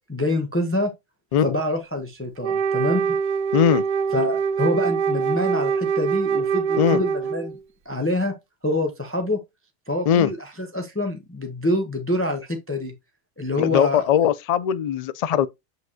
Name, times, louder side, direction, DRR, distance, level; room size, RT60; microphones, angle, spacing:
voice 1, 0.1-0.9 1.4-3.1 4.1-7.6 7.8-8.3 8.6-9.4 9.9-12.9 13.4-14.0, left 1 dB, 10° left, 0.9 m, -26 dB
Wind instrument woodwind instrument, 2.4-7.6, right 6 dB, 55° right, 0.6 m, -24 dB
voice 2, 3.5-3.8 6.8-7.0 10.1-10.3 13.6-15.5, left 9 dB, 60° left, 0.4 m, -20 dB
7.8 x 5.1 x 2.7 m
omnidirectional pair, 1.2 m